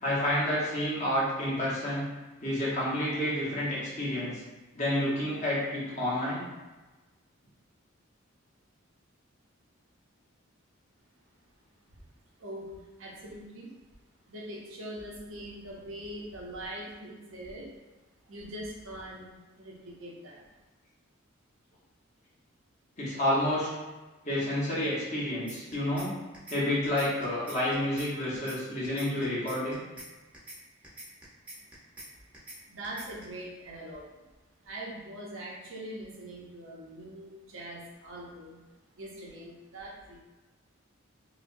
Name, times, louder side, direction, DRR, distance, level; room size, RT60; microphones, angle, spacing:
voice 1, 0.0-2.1 2.4-4.4 4.7-6.4 23.0-23.7 24.2-26.1 26.5-29.8, left 1 dB, 35° left, -8 dB, 1.1 m, -29 dB
voice 2, 12.4-13.7 14.3-17.7 18.3-19.3 19.6-20.4 32.7-34.2 34.6-38.6 38.9-40.2, right 1 dB, 65° right, -3 dB, 0.7 m, -42 dB
sound 1, 25.5-26.1 26.3-26.6 26.8-28.1 28.3-28.6 28.8-30.1 30.3-30.6 30.8-32.1 32.3-32.6 32.8-33.2, right 1 dB, 5° right, 0.8 m, -45 dB
4.9 x 2.2 x 2.6 m, 1.2 s
head